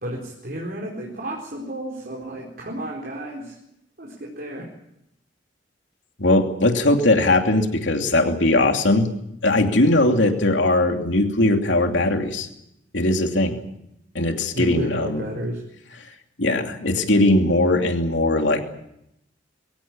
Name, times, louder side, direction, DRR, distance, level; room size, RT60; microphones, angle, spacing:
voice 1, 0.0-3.6 4.0-4.7 14.5-15.6, right 1 dB, 55° right, -1 dB, 4.4 m, -32 dB
voice 2, 6.2-9.1 9.4-12.5 12.9-13.6 14.1-15.2 16.4-18.6, left 2 dB, 90° left, 4 dB, 2.8 m, -19 dB
23.0 x 17.0 x 8.7 m, 0.81 s
head